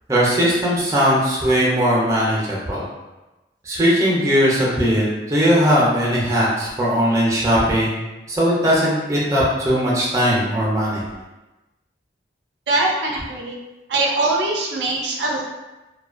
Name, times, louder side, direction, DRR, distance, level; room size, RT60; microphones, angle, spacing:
voice 1, 0.1-2.8 3.7-8.0 8.3-11.0, equal, 15° right, -6 dB, 0.5 m, -19 dB
voice 2, 12.7-13.6 13.9-15.4, right 2 dB, 70° right, -2 dB, 0.4 m, -22 dB
2.4 x 2.2 x 2.4 m, 1.1 s
head